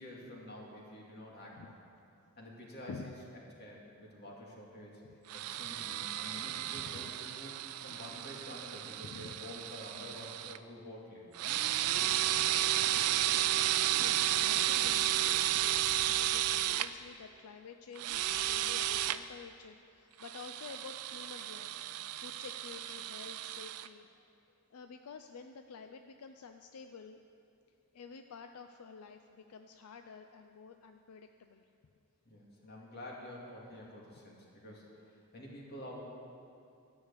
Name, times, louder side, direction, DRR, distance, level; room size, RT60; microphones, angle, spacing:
voice 1, 0.0-1.8 2.4-3.2 3.6-5.0 5.3-7.5 7.8-11.4 32.3-36.0, left 1 dB, 45° left, -3 dB, 2.3 m, -49 dB
sound 1, 5.3-10.6 11.3-16.9 18.0-19.2 20.2-23.9, right 13 dB, 90° right, 0.4 m, -33 dB
voice 2, 6.7-7.1 7.9-8.2 9.0-9.4 11.9-12.2 13.5-24.3 24.7-27.2 27.9-31.7, left 5 dB, 80° left, 7 dB, 0.5 m, -50 dB
13.0 x 6.4 x 8.2 m, 2.5 s
head